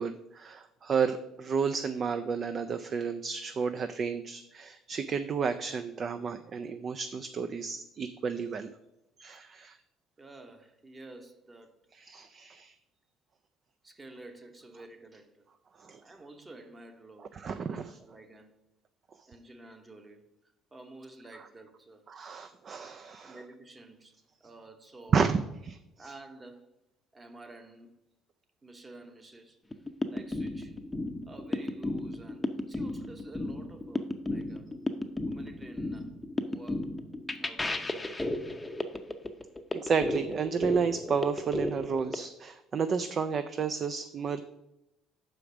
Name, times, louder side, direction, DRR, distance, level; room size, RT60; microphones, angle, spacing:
voice 1, 0.0-8.7 9.2-9.8 12.0-12.8 15.8-16.0 17.3-18.0 22.1-23.4 25.1-26.1 39.7-44.4, right 6 dB, 45° right, 0.4 m, -31 dB
voice 2, 10.2-11.7 13.8-15.5 16.0-17.3 18.0-18.6 19.3-20.2 20.7-22.1 22.9-25.3 26.0-26.7 27.1-28.0 28.6-29.6 30.1-30.8 31.3-34.7 35.3-36.9 37.3-38.4, right 2 dB, 20° right, 1.0 m, -50 dB
sound 1, 29.7-42.2, left 2 dB, 15° left, 0.6 m, -34 dB
5.9 x 5.0 x 6.1 m
cardioid pair, 100°, 0 cm